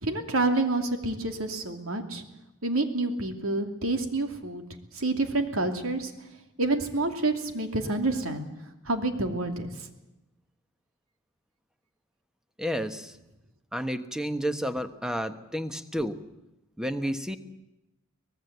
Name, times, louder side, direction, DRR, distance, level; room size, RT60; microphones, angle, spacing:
voice 1, 0.0-2.2 2.6-4.6 4.9-6.1 6.6-8.5 8.9-9.7, right 2 dB, 75° right, 6 dB, 2.7 m, -28 dB
voice 2, 12.6-13.1 13.7-16.2 16.8-17.4, equal, 5° right, 9 dB, 1.2 m, -31 dB
24.5 x 19.0 x 8.1 m, 0.94 s
head